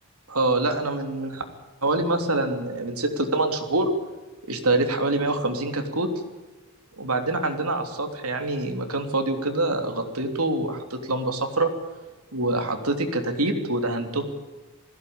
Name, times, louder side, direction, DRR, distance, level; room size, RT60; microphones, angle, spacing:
voice 1, 0.3-1.4 1.8-3.9 4.5-6.1 6.9-11.7 12.3-14.2, right 2 dB, 85° right, 5 dB, 3.3 m, -25 dB
21.0 x 16.5 x 8.8 m, 1.2 s
head